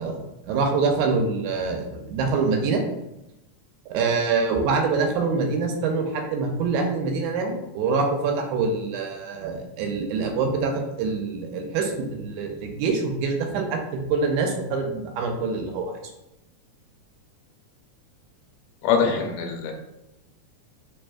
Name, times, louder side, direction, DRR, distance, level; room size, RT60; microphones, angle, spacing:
voice 1, 0.0-2.8 3.9-15.9, right 4 dB, 90° right, 3 dB, 2.0 m, -25 dB
voice 2, 18.8-19.7, left 6 dB, 90° left, 3 dB, 2.1 m, -23 dB
4.3 x 3.2 x 2.3 m, 0.92 s
omnidirectional pair, 3.4 m